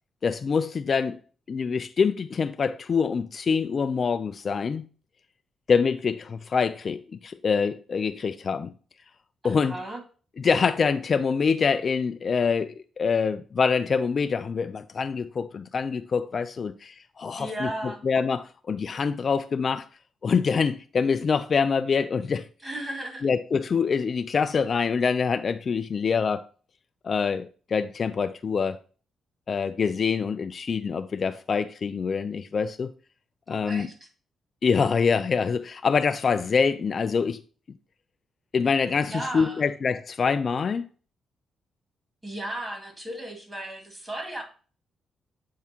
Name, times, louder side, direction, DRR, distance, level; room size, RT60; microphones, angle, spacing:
voice 1, 0.2-1.2 1.5-4.9 5.7-8.7 9.4-9.8 10.4-19.9 20.2-22.5 23.2-26.4 27.0-28.8 29.5-32.9 33.5-33.9 34.6-37.4 38.5-40.9, left 5 dB, 45° left, 0.4 m, -25 dB
voice 2, 9.4-10.0 17.4-18.0 22.6-23.3 33.5-33.9 39.1-39.7 42.2-44.4, right 1 dB, 20° right, 2.3 m, -35 dB
8.3 x 3.7 x 4.4 m
cardioid pair, 105°, 0 cm